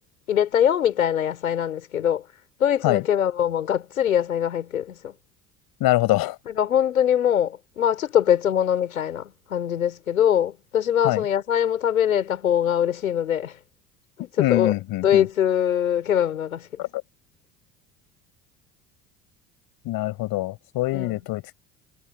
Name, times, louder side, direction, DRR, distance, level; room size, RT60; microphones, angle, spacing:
voice 1, 0.3-2.3 2.6-5.1 6.5-13.6 14.2-14.7 15.0-16.8 20.9-21.2, left 9 dB, 85° left, 7.3 m, -23 dB
voice 2, 5.8-6.4 11.0-11.2 14.2-15.3 16.8-16.9 19.9-21.5, left 18 dB, 60° left, 7.4 m, -24 dB
hypercardioid pair, 65°, 41 cm